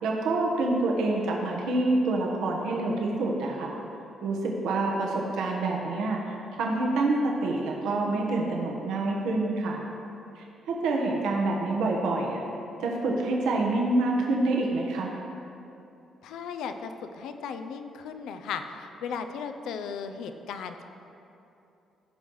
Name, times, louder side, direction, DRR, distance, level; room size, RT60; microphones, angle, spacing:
voice 1, 0.0-3.7 4.2-6.2 6.5-9.8 10.3-12.4 12.8-15.1, right 2 dB, 85° right, -1 dB, 1.3 m, -27 dB
voice 2, 16.2-20.8, left 6 dB, 85° left, 7 dB, 0.6 m, -36 dB
16.0 x 5.5 x 4.8 m, 2.8 s
cardioid pair, 90°, 0 cm